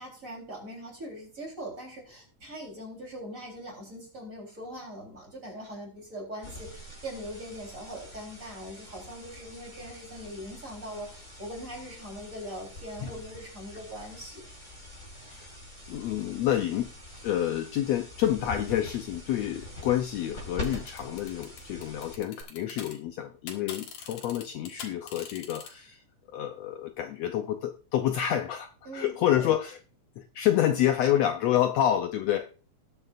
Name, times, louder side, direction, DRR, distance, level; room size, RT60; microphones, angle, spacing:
voice 1, 0.0-14.4 28.9-29.5, equal, 25° right, 0 dB, 4.2 m, -41 dB
sound 1, 6.4-22.4, left 1 dB, 20° left, 5.9 m, -44 dB
voice 2, 15.9-16.9 17.2-26.0 26.3-29.8 30.2-32.5, left 11 dB, 75° left, 6 dB, 1.7 m, -28 dB
sound 2, 20.6-22.9 23.2-25.7, left 7 dB, 90° left, 3.2 m, -42 dB
19.5 x 8.3 x 2.6 m, 0.36 s
omnidirectional pair, 3.6 m